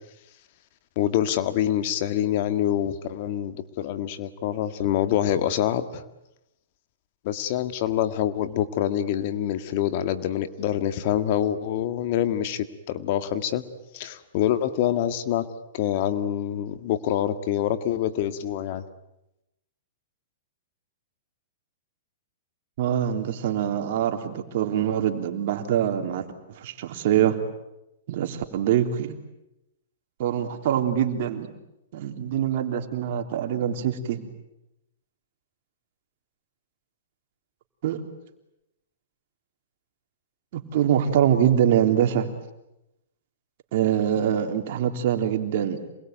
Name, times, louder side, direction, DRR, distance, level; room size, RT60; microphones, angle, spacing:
voice 1, 1.0-6.0 7.2-13.6 13.9-15.5 15.7-18.8, left 11 dB, 50° left, 11 dB, 1.9 m, -26 dB
voice 2, 22.8-26.2 26.6-27.4 28.1-29.1 30.2-31.5 31.9-34.3 37.8-38.0 40.5-42.3 43.7-45.8, right 10 dB, 55° right, 6 dB, 3.5 m, -24 dB
27.5 x 21.0 x 9.3 m, 0.89 s
hypercardioid pair, 140°, 0 cm